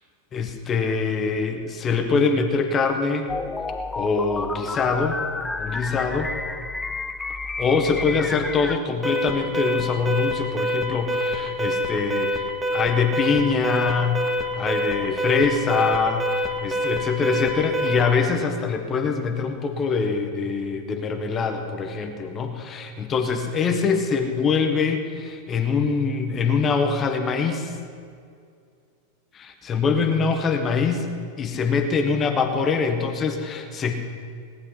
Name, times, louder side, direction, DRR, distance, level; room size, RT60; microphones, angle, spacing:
voice 1, 0.3-3.3 3.9-5.2 5.6-6.3 7.6-27.7 29.3-31.1 31.4-33.9, left 5 dB, 25° left, 5 dB, 1.4 m, -24 dB
sound 1, 3.3-8.8, left 3 dB, 10° left, 0.6 m, -31 dB
Alarm, 9.0-18.2, equal, 5° right, 1.9 m, -26 dB
18.5 x 11.0 x 5.8 m, 2.2 s
figure-of-eight pair, 90°, 0 cm